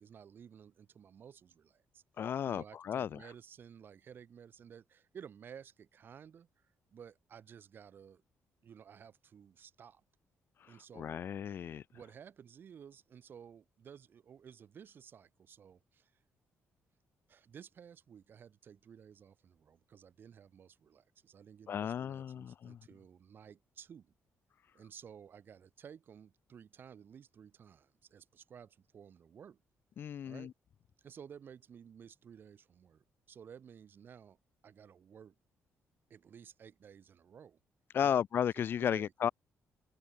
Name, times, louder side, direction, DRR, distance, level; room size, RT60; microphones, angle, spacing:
voice 1, 0.0-2.0 2.5-6.5 6.9-8.2 8.6-10.0 10.7-11.3 11.9-16.1 17.3-24.1 24.7-29.6 30.2-30.5 31.0-34.4 34.6-35.4 36.1-37.6 38.0-38.2 38.5-39.3, right 7 dB, 45° right, 7.4 m, -54 dB
voice 2, 2.2-3.2 10.6-11.8 21.7-22.8 30.0-30.5 37.9-39.3, left 9 dB, 45° left, 0.6 m, -34 dB
cardioid pair, 160°, 5 cm